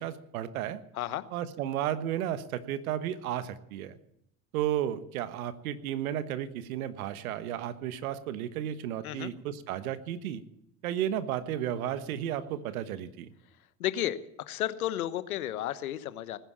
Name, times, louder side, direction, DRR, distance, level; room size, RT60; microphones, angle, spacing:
voice 1, 0.0-0.8 1.3-4.0 4.5-10.4 10.8-13.3, right 11 dB, 80° right, 12 dB, 1.3 m, -33 dB
voice 2, 13.8-14.2 14.5-16.4, left 13 dB, 90° left, 13 dB, 1.1 m, -32 dB
19.5 x 10.5 x 7.3 m, 0.78 s
hypercardioid pair, 75°, 42 cm